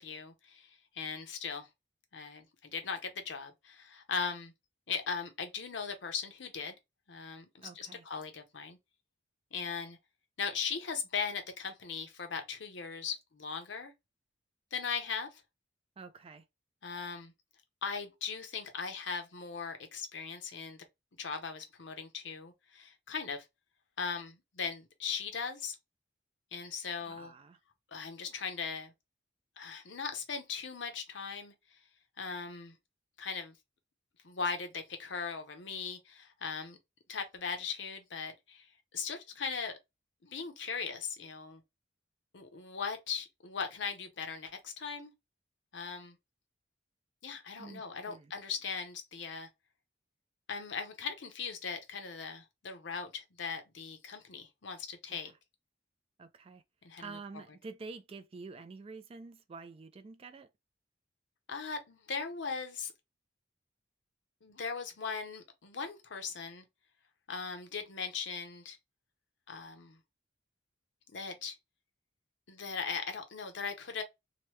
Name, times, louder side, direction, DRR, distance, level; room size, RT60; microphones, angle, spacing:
voice 1, 0.0-1.7 2.1-4.5 4.9-6.7 7.1-8.8 9.5-10.0 10.4-13.9 14.7-15.3 16.8-17.3 17.8-20.8 21.2-23.4 24.0-25.8 26.5-27.3 27.9-28.9 29.6-31.8 32.2-32.7 33.2-33.5 34.2-36.8 37.1-38.7 38.9-39.7 40.2-41.6 42.3-45.1 45.7-46.2 47.2-49.5 50.5-55.3 56.8-57.0 61.5-62.9 64.4-66.6 67.3-68.8 69.5-70.0 71.1-71.5 72.5-74.0, left 5 dB, 70° left, 0.7 m, -39 dB
voice 2, 7.6-8.0 16.0-16.4 27.1-27.6 47.6-48.3 55.1-55.4 56.2-56.6 57.0-60.5, right 4 dB, 30° right, 0.3 m, -48 dB
2.9 x 2.2 x 3.0 m
head